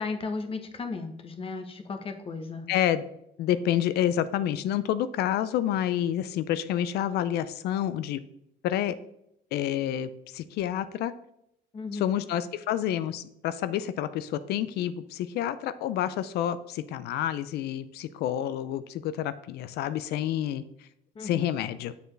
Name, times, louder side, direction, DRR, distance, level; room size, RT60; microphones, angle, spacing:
voice 1, 0.0-2.7 11.7-12.1 21.1-21.5, left 4 dB, 35° left, 6 dB, 1.0 m, -35 dB
voice 2, 2.7-3.0 3.4-8.2 8.6-9.0 9.5-11.1 11.9-20.6 21.2-21.9, left 11 dB, 75° left, 13 dB, 0.4 m, -28 dB
6.7 x 6.7 x 3.3 m, 0.77 s
cardioid pair, 110°, 17 cm